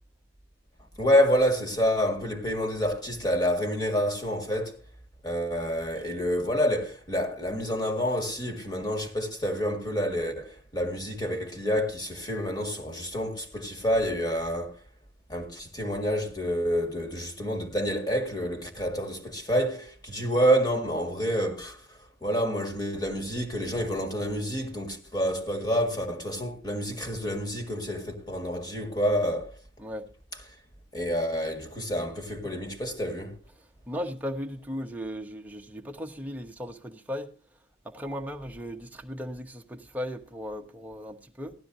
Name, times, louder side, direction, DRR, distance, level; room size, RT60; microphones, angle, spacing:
voice 1, 1.0-4.8 5.2-14.8 15.3-29.5 30.9-33.3, equal, 20° left, 1.8 m, -28 dB
voice 2, 33.9-37.3 37.8-41.5, equal, 10° right, 1.0 m, -36 dB
16.0 x 12.0 x 2.7 m
head